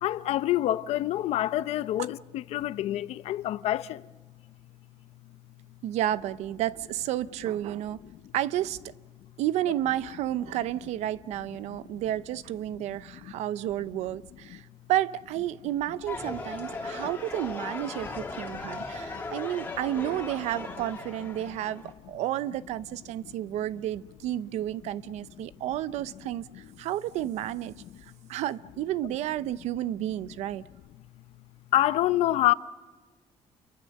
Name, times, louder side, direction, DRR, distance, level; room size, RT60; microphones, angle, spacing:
voice 1, 0.0-4.0 8.1-8.2 11.6-12.0 13.1-13.3 14.5-14.6 16.8-17.0 18.5-18.6 19.1-19.2 23.2-23.3 25.4-25.5 31.7-32.5, left 14 dB, 70° left, 0.7 m, -27 dB
voice 2, 5.8-8.0 8.3-8.8 9.4-14.6 14.9-26.5 26.8-27.7 28.3-30.6, right 13 dB, 90° right, 0.7 m, -31 dB
sound 1, 16.1-21.9, left 3 dB, 15° left, 3.0 m, -38 dB
29.5 x 23.0 x 6.5 m
cardioid pair, 175°, 11 cm